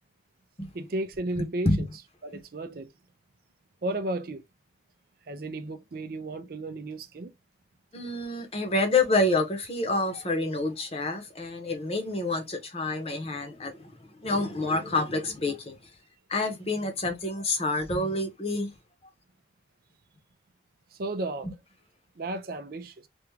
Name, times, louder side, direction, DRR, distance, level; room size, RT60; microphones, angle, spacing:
voice 1, 0.7-1.7 2.2-2.9 3.8-4.4 5.3-7.3 20.9-21.5 22.2-23.1, right 2 dB, 50° right, 0.4 m, -33 dB
voice 2, 7.9-13.9 14.2-15.8 16.3-18.7, left 2 dB, 30° left, 0.9 m, -28 dB
3.5 x 2.4 x 3.1 m
head